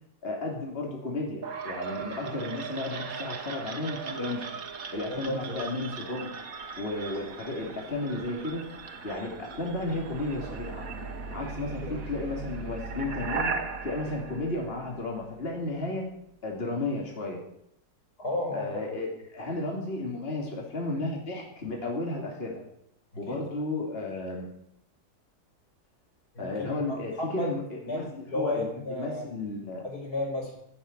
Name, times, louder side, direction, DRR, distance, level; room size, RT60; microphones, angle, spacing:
voice 1, 0.2-4.5 4.9-6.3 6.8-8.6 9.0-10.8 11.3-13.5 13.8-16.1 16.4-17.4 18.5-22.6 23.2-24.5 26.4-29.8, left 2 dB, 40° left, 0 dB, 3.0 m, -33 dB
sound 1, 1.4-15.3, right 5 dB, 65° right, 1.8 m, -38 dB
voice 2, 5.1-5.6 11.8-12.0 18.2-18.7 23.3-23.4 26.3-27.5 27.9-28.0 28.3-29.3 29.8-30.5, left 1 dB, 90° left, 0 dB, 5.2 m, -33 dB
16.0 x 6.9 x 9.6 m, 0.72 s
omnidirectional pair, 1.6 m